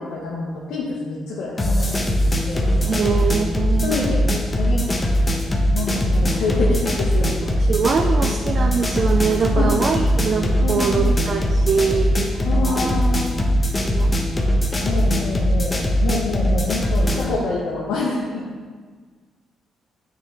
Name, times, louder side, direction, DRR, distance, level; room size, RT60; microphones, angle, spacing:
voice 1, 0.0-2.0 2.5-2.8 3.8-5.0 5.3-5.4 5.7-7.3 9.6-9.7 10.6-11.1 12.5-13.4 14.8-18.4, left 3 dB, 80° left, -5 dB, 1.1 m, -27 dB
sound 1, 1.6-17.3, equal, 25° left, 0.9 m, -20 dB
voice 2, 2.8-4.1 7.6-12.9 13.8-14.2 14.8-15.0, right 6 dB, 50° right, 4 dB, 0.4 m, -23 dB
9.3 x 3.7 x 3.3 m, 1.5 s
cardioid pair, 90°, 0 cm